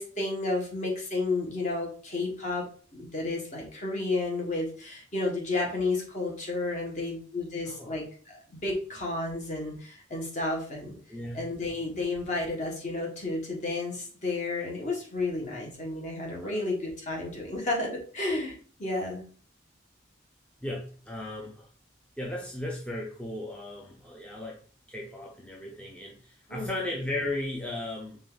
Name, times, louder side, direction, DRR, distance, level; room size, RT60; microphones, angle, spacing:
voice 1, 0.0-2.7 2.9-11.0 11.3-19.2 26.5-26.7, left 2 dB, 35° left, 0 dB, 1.3 m, -32 dB
voice 2, 7.7-8.0 11.1-11.4 16.4-16.7 20.6-21.7 22.2-24.6 24.9-28.2, left 1 dB, 5° left, -3 dB, 0.6 m, -36 dB
5.2 x 2.5 x 3.8 m, 0.42 s
head